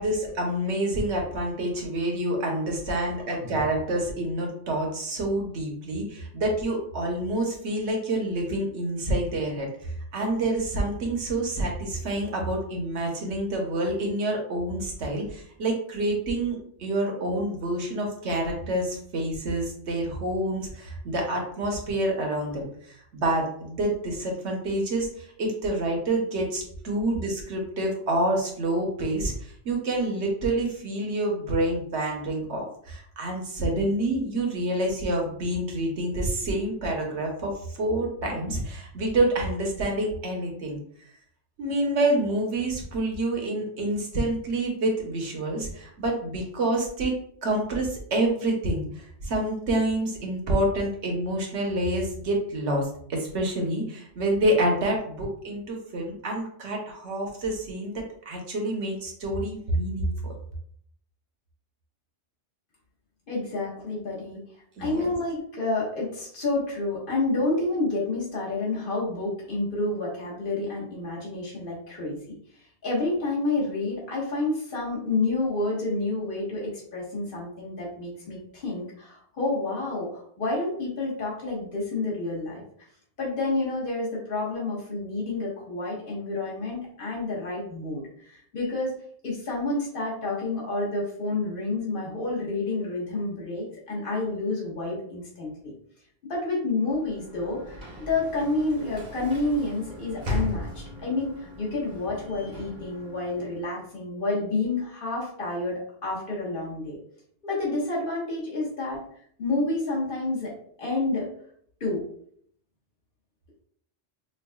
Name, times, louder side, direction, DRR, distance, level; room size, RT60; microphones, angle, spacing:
voice 1, 0.0-22.7 23.1-37.5 37.8-40.8 41.6-47.1 47.4-57.9 58.3-60.3 64.8-65.1, right 1 dB, 65° right, 1 dB, 1.2 m, -27 dB
voice 2, 63.3-64.4 64.8-72.2 72.8-82.6 83.2-88.9 89.2-95.7 96.3-107.0 107.4-109.0 109.4-110.5 110.8-111.3 111.8-112.0, left 2 dB, 45° left, -5 dB, 1.5 m, -29 dB
Sliding door / Slam, 96.8-103.8, left 2 dB, 40° right, 0.9 m, -37 dB
5.3 x 2.4 x 2.3 m, 0.63 s
omnidirectional pair, 1.3 m